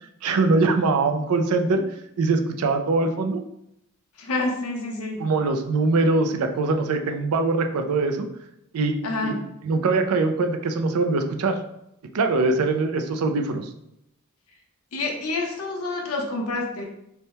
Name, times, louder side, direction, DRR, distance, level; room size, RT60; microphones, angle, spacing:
voice 1, 0.2-1.8 2.2-3.4 5.2-8.3 8.7-9.0 9.2-9.3 9.6-11.6 12.1-13.7, right 3 dB, 80° right, 6 dB, 0.4 m, -22 dB
voice 2, 4.2-5.2 9.0-9.4 14.9-16.8, left 2 dB, 80° left, 1 dB, 0.8 m, -28 dB
3.4 x 2.2 x 4.1 m, 0.80 s
head